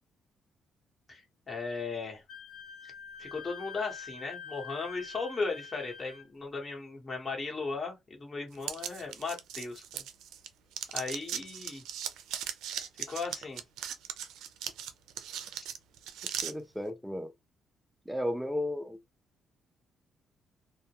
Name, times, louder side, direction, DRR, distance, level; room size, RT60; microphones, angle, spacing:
voice 1, 1.5-2.2 3.2-9.8 10.9-11.8 13.1-13.6, left 4 dB, 30° left, 1.1 m, -36 dB
Wind instrument woodwind instrument, 2.3-6.2, left 6 dB, 70° left, 1.1 m, -46 dB
sound 1, 8.6-10.5 10.7-16.5, right 9 dB, 85° right, 0.4 m, -38 dB
voice 2, 16.4-17.3 18.1-19.0, left 1 dB, ahead, 0.4 m, -34 dB
2.2 x 2.1 x 2.8 m
cardioid pair, 90°, 0 cm